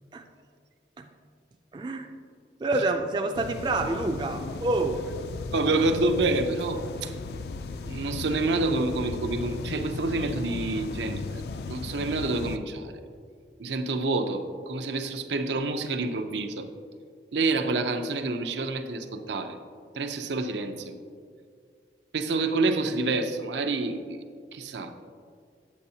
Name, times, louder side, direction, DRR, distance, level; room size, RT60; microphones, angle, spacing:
voice 1, 1.7-2.1 2.6-5.1, right 2 dB, 25° right, 5 dB, 0.3 m, -27 dB
sound 1, 3.3-12.6, left 3 dB, 65° left, 0.3 m, -36 dB
voice 2, 5.5-7.1 7.8-12.9 13.6-16.7 17.3-19.6 20.0-21.0 22.1-24.2 24.5-24.9, right 3 dB, 85° right, 6 dB, 0.6 m, -28 dB
8.6 x 8.3 x 2.8 m, 2.2 s
head